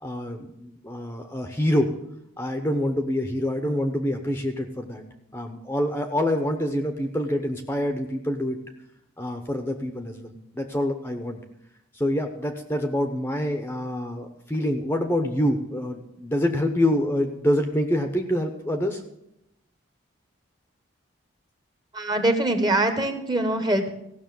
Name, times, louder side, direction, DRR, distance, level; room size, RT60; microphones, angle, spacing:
voice 1, 0.0-1.9 2.4-5.0 5.3-8.6 9.2-11.4 11.9-19.0, left 1 dB, 10° left, 5 dB, 0.8 m, -26 dB
voice 2, 21.9-23.9, right 1 dB, 20° right, 7 dB, 1.1 m, -23 dB
15.5 x 6.2 x 7.6 m, 0.81 s
head